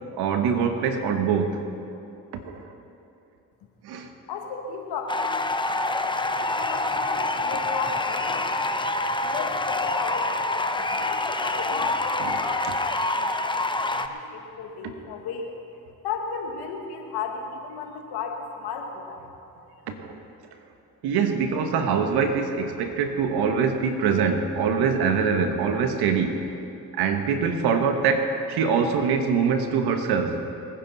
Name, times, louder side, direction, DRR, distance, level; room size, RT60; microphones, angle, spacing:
voice 1, 0.1-1.7 2.4-2.6 3.8-4.1 12.2-12.3 20.0-20.2 21.0-26.5 27.0-30.4, right 6 dB, 80° right, 6 dB, 1.5 m, -24 dB
voice 2, 4.3-5.4 6.4-8.6 9.2-13.4 13.9-15.5 16.0-19.2, left 5 dB, 80° left, 2 dB, 2.0 m, -34 dB
sound 1, 5.1-14.1, left 2 dB, 10° left, 0.9 m, -26 dB
24.5 x 10.0 x 4.1 m, 2.8 s
supercardioid pair, 55°, 38 cm